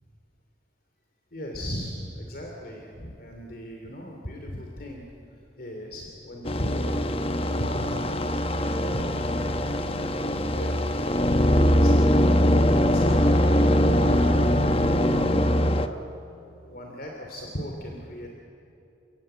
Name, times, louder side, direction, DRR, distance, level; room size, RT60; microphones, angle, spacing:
voice 1, 1.3-8.0 8.5-9.4 10.0-12.2 12.9-14.5 15.3-16.1 16.7-18.3, equal, 50° left, 1 dB, 2.8 m, -38 dB
sound 1, 6.5-15.9, equal, 30° left, 0.9 m, -22 dB
30.0 x 17.0 x 8.9 m, 2.7 s
head